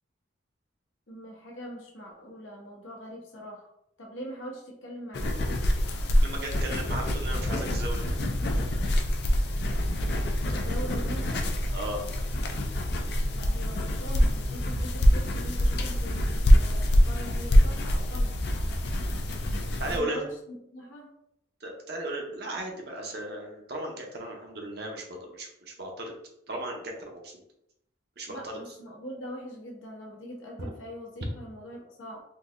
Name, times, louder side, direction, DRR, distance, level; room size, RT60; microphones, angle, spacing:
voice 1, 1.1-3.7 4.0-5.4 10.5-11.5 13.3-18.4 19.8-21.1 28.3-32.2, equal, 85° left, -1 dB, 1.0 m, -42 dB
sound 1, 5.1-20.0, equal, 55° left, 0.4 m, -25 dB
voice 2, 6.2-8.2 11.7-12.0 19.8-20.2 21.6-26.1 26.5-27.4 28.2-28.6 30.6-30.7, right 1 dB, 55° right, 1 dB, 0.7 m, -36 dB
3.8 x 2.6 x 2.5 m, 0.77 s
head